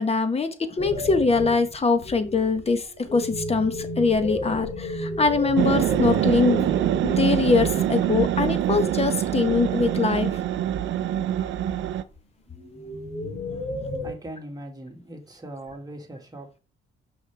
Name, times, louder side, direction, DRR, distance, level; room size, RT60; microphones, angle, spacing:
voice 1, 0.0-6.7 7.0-10.3, left 4 dB, 30° left, 1.1 m, -23 dB
sound 1, 0.8-8.0 8.6-9.9 10.4-10.9 11.4-14.1, left 1 dB, 70° left, 3.5 m, -34 dB
sound 2, 5.6-12.0, right 11 dB, 75° right, 0.6 m, -24 dB
voice 2, 14.0-16.6, right 1 dB, 20° right, 2.0 m, -40 dB
5.8 x 5.8 x 3.4 m
cardioid pair, 90°, 20 cm